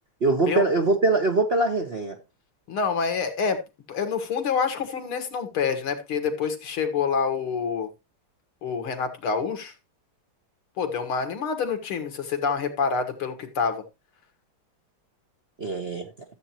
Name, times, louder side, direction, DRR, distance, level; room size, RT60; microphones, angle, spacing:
voice 1, 0.2-2.2 15.6-16.1, right 2 dB, 40° right, 0.9 m, -23 dB
voice 2, 2.7-3.6 3.9-7.9 8.6-9.7 10.8-13.8, left 5 dB, 75° left, 2.4 m, -27 dB
13.5 x 7.8 x 2.9 m
omnidirectional pair, 2.3 m